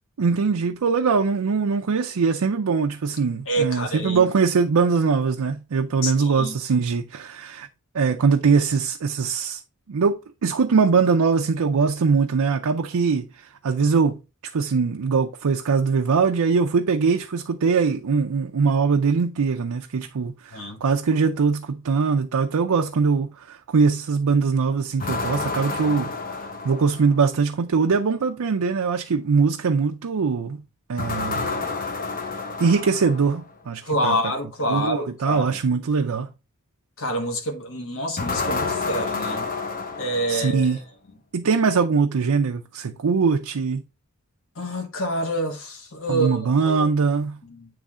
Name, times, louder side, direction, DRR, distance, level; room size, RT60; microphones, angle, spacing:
voice 1, 0.2-7.7 7.9-9.6 9.9-14.2 14.5-26.1 26.6-30.6 30.9-31.5 32.6-34.2 34.7-36.3 40.3-40.8 41.3-43.8 46.1-47.4, right 5 dB, 80° right, 0.5 m, -22 dB
voice 2, 3.5-4.3 6.0-6.6 20.5-20.8 33.8-35.6 37.0-39.5 40.0-40.7 44.5-46.9 47.5-47.7, right 1 dB, 65° left, 1.5 m, -27 dB
sound 1, 25.0-27.3 31.0-33.5 38.2-40.8, left 4 dB, 40° left, 0.9 m, -29 dB
8.4 x 3.2 x 3.6 m
head